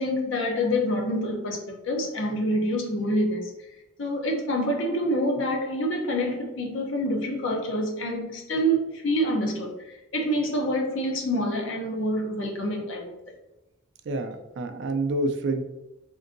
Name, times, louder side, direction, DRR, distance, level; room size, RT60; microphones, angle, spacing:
voice 1, 0.0-3.5 4.0-13.1, equal, 70° left, 0.7 m, -27 dB
voice 2, 14.1-15.6, right 2 dB, 60° right, 0.3 m, -28 dB
3.6 x 2.6 x 2.5 m
head